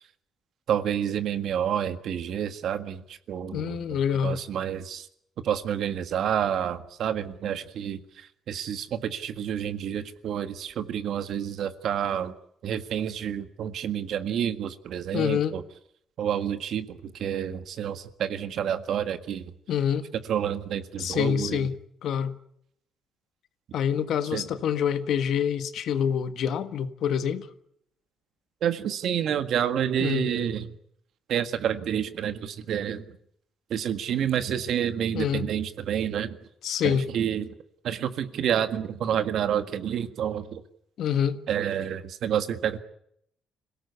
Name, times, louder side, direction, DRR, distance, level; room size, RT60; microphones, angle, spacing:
voice 1, 0.7-5.1 5.4-12.3 12.6-15.6 16.2-19.5 20.3-21.7 24.3-24.5 28.6-30.8 31.3-33.0 33.7-36.4 36.8-37.5 37.8-40.6 41.5-42.8, right 9 dB, 70° right, 1.7 m, -29 dB
voice 2, 3.5-4.4 15.1-15.6 19.7-20.1 21.0-21.8 22.0-22.4 23.7-27.5 30.0-30.3 35.1-35.5 36.6-37.1 41.0-41.4, left 8 dB, 70° left, 1.5 m, -26 dB
26.0 x 18.0 x 8.3 m
cardioid pair, 120°, 0 cm